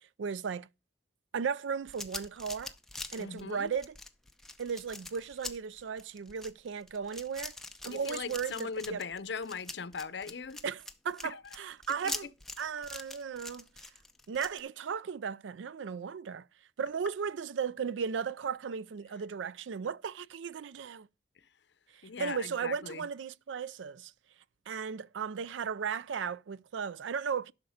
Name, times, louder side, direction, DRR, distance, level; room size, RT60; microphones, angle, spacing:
voice 1, 0.2-0.7 1.3-2.7 3.1-3.9 4.6-7.6 7.8-9.0 10.6-12.3 12.6-13.7 14.3-16.4 16.8-21.1 22.2-24.1 24.7-27.5, right 6 dB, 85° right, 0.4 m, -36 dB
sound 1, 1.9-14.6, left 2 dB, ahead, 0.7 m, -44 dB
voice 2, 3.2-3.7 7.8-10.6 11.2-11.4 11.9-12.3 21.4-21.5 22.0-23.1, left 5 dB, 70° left, 0.7 m, -40 dB
11.5 x 5.8 x 5.0 m
head